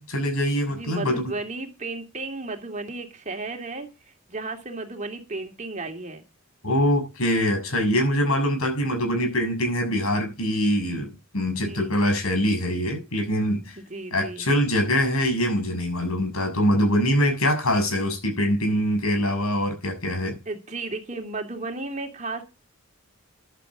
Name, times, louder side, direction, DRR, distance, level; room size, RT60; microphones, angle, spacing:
voice 1, 0.0-1.3 6.6-11.1 11.3-13.7 14.1-20.4, equal, 85° left, 6.7 m, -23 dB
voice 2, 0.7-6.2 11.6-11.9 13.8-14.4 20.5-22.4, right 3 dB, 35° right, 2.7 m, -34 dB
15.0 x 11.5 x 3.9 m
head